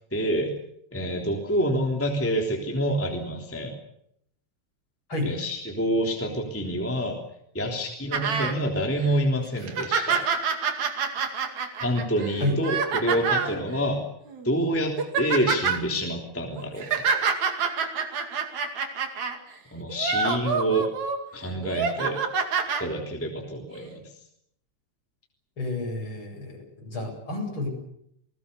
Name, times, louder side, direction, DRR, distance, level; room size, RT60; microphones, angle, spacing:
voice 1, 0.1-0.5 0.9-3.7 5.2-7.2 7.5-10.2 11.8-14.0 14.4-16.9 19.7-20.9 21.3-22.2 22.8-24.0, equal, 5° left, 1 dB, 3.1 m, -27 dB
sound 1, 8.1-8.5 9.0-9.1 9.6-13.5 14.3-14.5 14.8-15.8 16.6-19.4 19.9-21.2 21.6-22.8 23.7-23.8, right 5 dB, 70° right, 3.7 m, -27 dB
voice 2, 25.6-27.7, left 2 dB, 40° left, 1 dB, 8.8 m, -30 dB
29.5 x 20.5 x 7.0 m, 0.73 s
omnidirectional pair, 3.4 m